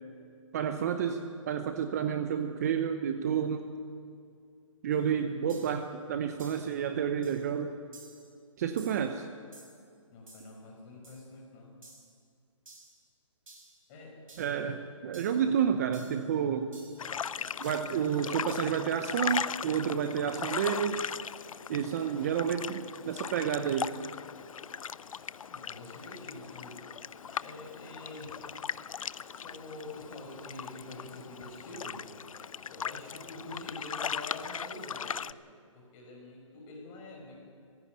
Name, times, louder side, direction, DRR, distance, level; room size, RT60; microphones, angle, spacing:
voice 1, 0.5-3.7 4.8-7.7 8.6-9.3 14.4-16.7 17.6-21.0 21.7-24.0, right 8 dB, 30° right, 7 dB, 0.8 m, -30 dB
sound 1, 4.9-5.0 5.5-5.8 6.4-6.7 7.2-7.5 7.9-8.3 8.8-9.1 9.5-9.8 10.3-10.6 11.0-11.3 11.8-12.2 12.7-13.0 13.5-13.8 14.3-14.6 15.1-15.5 15.9-16.3 16.7-17.1 17.6-18.0 18.5-18.8 19.3-19.6, right 3 dB, 90° right, 6.6 m, -54 dB
voice 2, 10.1-11.7 13.9-14.2 25.5-26.8 27.4-28.4 29.4-32.1 32.7-35.3 35.7-37.4, left 2 dB, 25° left, -1 dB, 5.3 m, -46 dB
sound 2, 17.0-35.3, left 7 dB, 85° left, 0.5 m, -39 dB
18.5 x 16.0 x 9.2 m, 2.3 s
hypercardioid pair, 160°, 17 cm